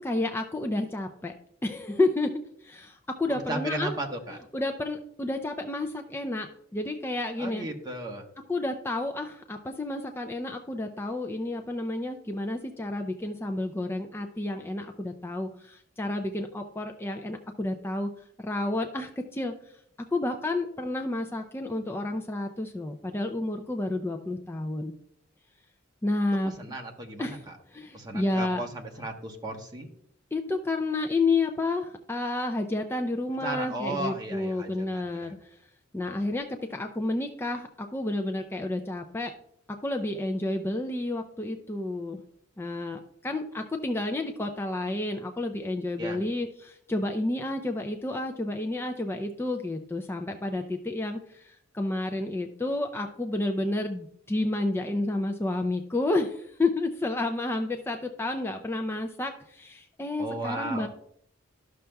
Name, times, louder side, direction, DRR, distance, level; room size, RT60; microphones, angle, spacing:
voice 1, 0.0-1.3 1.6-3.9 4.5-7.7 8.5-18.1 18.4-19.5 20.1-24.9 26.0-26.5 27.2-28.6 30.3-35.5 35.9-39.3 39.8-42.2 42.6-60.9, left 2 dB, 10° left, 4 dB, 0.4 m, -30 dB
voice 2, 3.3-4.4 7.4-8.2 26.6-27.4 27.9-29.9 33.4-35.3 46.0-46.2 60.2-60.9, right 1 dB, 20° right, 1 dB, 1.1 m, -35 dB
12.0 x 6.4 x 2.3 m, 0.69 s
head